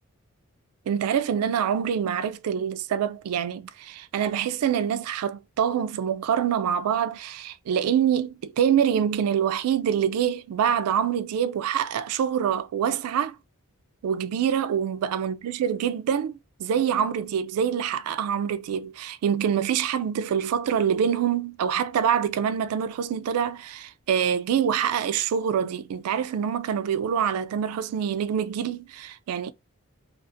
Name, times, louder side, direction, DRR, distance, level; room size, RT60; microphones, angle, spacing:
voice 1, 0.9-13.4 14.0-29.5, right 8 dB, 80° right, 0.3 m, -25 dB
2.4 x 2.4 x 2.5 m
head